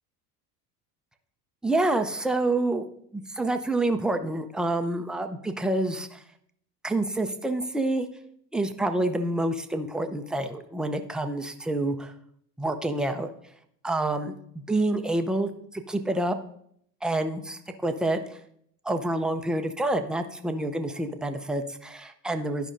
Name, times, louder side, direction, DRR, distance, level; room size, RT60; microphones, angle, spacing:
voice 1, 1.6-2.8 3.1-6.2 6.8-8.1 8.5-12.1 12.6-13.3 13.8-14.3 14.7-15.5 15.9-16.4 17.0-18.2 18.8-22.7, right 2 dB, ahead, 6 dB, 0.4 m, -27 dB
12.0 x 5.2 x 2.6 m, 0.69 s
hypercardioid pair, 65°, 50 cm